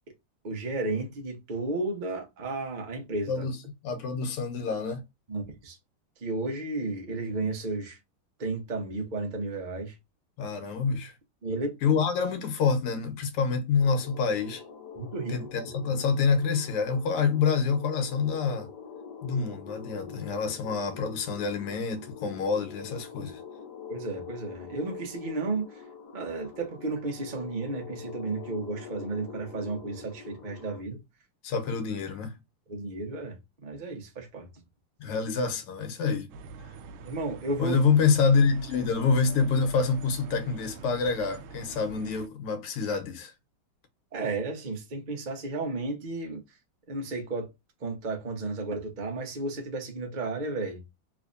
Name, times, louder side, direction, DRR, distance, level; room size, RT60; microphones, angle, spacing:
voice 1, 0.4-3.5 5.3-5.8 6.2-8.0 8.4-9.9 11.4-11.8 15.0-15.5 23.9-25.8 26.1-31.0 32.7-33.4 33.6-34.5 37.0-37.8 44.1-46.4 46.9-47.5 47.8-50.8, right 2 dB, 55° right, 0.5 m, -33 dB
voice 2, 3.3-3.6 3.8-5.0 10.4-11.1 11.8-14.6 15.3-18.7 19.2-23.4 31.4-32.4 35.0-36.3 37.6-43.3, left 5 dB, 85° left, 1.8 m, -27 dB
sound 1, 13.8-30.8, left 6 dB, 65° left, 1.1 m, -45 dB
sound 2, 36.3-42.3, right 5 dB, 75° right, 1.3 m, -45 dB
3.5 x 3.2 x 2.5 m
omnidirectional pair, 2.4 m